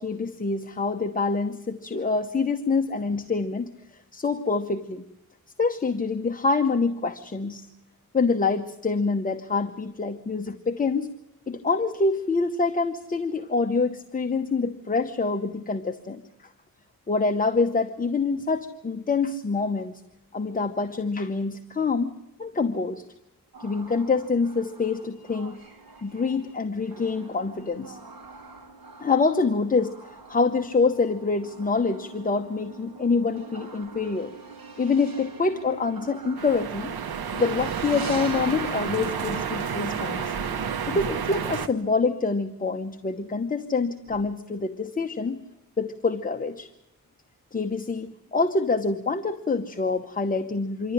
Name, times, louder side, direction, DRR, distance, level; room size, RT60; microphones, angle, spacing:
voice 1, 0.0-5.0 5.6-7.7 8.1-11.1 11.5-16.2 17.1-20.0 20.3-22.1 22.4-23.0 23.6-25.6 26.0-28.0 29.0-34.4 34.8-36.9 37.3-40.3 40.9-45.4 45.8-46.7 47.5-50.9, left 4 dB, 25° left, 7 dB, 0.9 m, -26 dB
sound 1, 23.5-41.0, right 3 dB, 70° right, 3.7 m, -43 dB
sound 2, 36.4-41.7, right 7 dB, 85° right, 1.2 m, -30 dB
26.0 x 12.5 x 9.9 m, 0.92 s
wide cardioid pair, 130°, 36 cm